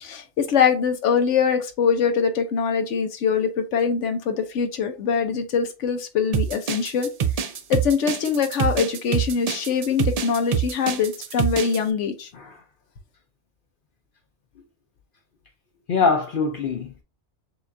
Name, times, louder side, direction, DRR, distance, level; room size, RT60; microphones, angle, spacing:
voice 1, 0.0-7.1 7.7-12.3, left 6 dB, 85° left, 1.1 m, -23 dB
sound 1, 6.3-11.8, right 7 dB, 85° right, 0.3 m, -25 dB
voice 2, 15.9-17.0, left 4 dB, 55° left, 0.6 m, -23 dB
6.7 x 2.4 x 2.6 m
omnidirectional pair, 1.2 m